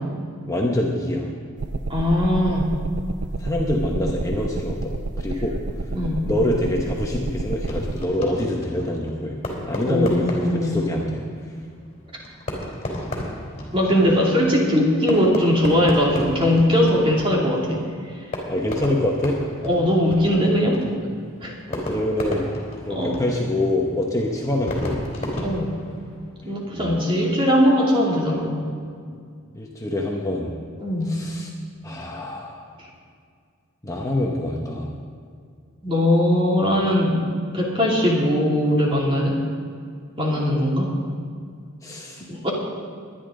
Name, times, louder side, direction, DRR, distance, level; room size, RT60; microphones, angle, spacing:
voice 1, 0.4-1.3 3.4-5.6 6.2-9.4 9.6-11.2 18.5-19.4 21.7-22.5 22.9-25.0 26.7-27.2 29.5-30.5 31.0-31.5 31.8-32.6 33.8-34.9 41.8-42.2, left 1 dB, 15° left, -1 dB, 1.1 m, -25 dB
sound 1, 1.6-8.0, right 2 dB, 55° right, 0.5 m, -30 dB
voice 2, 1.9-2.7 5.9-6.2 9.9-10.8 13.7-17.8 19.6-20.8 21.4-21.5 22.9-23.2 25.4-25.7 26.4-28.5 30.8-31.1 35.8-37.2 37.5-39.4 40.2-40.9 42.2-42.5, equal, 25° right, -3 dB, 2.8 m, -20 dB
Fireworks, 7.6-26.4, left 1 dB, 30° left, 3.3 m, -34 dB
21.5 x 10.5 x 3.9 m, 2.2 s
head